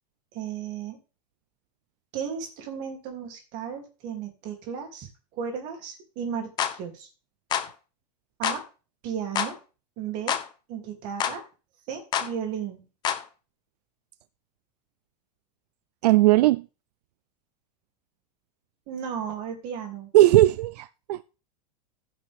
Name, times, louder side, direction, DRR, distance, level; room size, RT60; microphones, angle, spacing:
voice 1, 0.3-1.0 2.1-7.1 8.4-8.6 9.0-9.6 10.0-10.4 10.7-11.4 11.9-12.9 18.9-20.1, right 7 dB, 40° right, 2.9 m, -34 dB
sound 1, 6.6-6.8 7.5-7.7 8.4-8.6 9.3-9.5 10.3-10.5 11.2-11.4 12.1-12.3 13.0-13.2, left 9 dB, 20° left, 0.9 m, -27 dB
voice 2, 16.0-16.6 20.1-21.2, right 16 dB, 80° right, 0.5 m, -18 dB
15.5 x 5.8 x 3.6 m
supercardioid pair, 170°, 20 cm